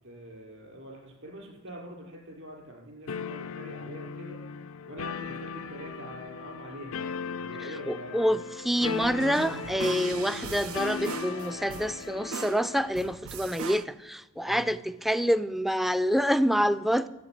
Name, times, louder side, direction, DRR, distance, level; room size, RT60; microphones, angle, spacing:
voice 1, 0.0-8.3 14.3-14.7, right 1 dB, 65° right, 4.8 m, -45 dB
sound 1, 3.1-13.1, left 5 dB, 70° left, 0.5 m, -38 dB
voice 2, 7.9-17.1, equal, ahead, 0.4 m, -27 dB
sound 2, 8.8-13.9, right 6 dB, 85° right, 0.6 m, -40 dB
13.0 x 8.2 x 8.8 m
head